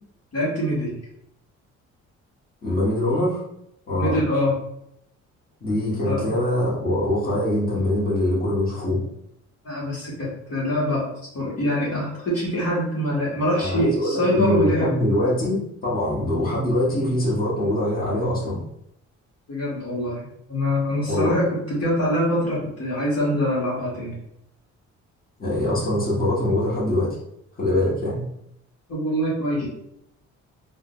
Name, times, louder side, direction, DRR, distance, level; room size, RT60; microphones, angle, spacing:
voice 1, 0.3-1.0 4.0-4.5 6.0-6.2 9.6-11.1 11.3-15.0 19.5-24.2 28.9-29.7, equal, 55° left, -6 dB, 1.4 m, -24 dB
voice 2, 2.6-3.4 3.9-4.2 5.6-9.0 13.6-18.6 21.1-21.3 25.4-27.1 27.6-28.2, left 1 dB, 30° left, -8 dB, 1.3 m, -23 dB
3.6 x 2.3 x 2.5 m, 0.77 s
cardioid pair, 90°, 30 cm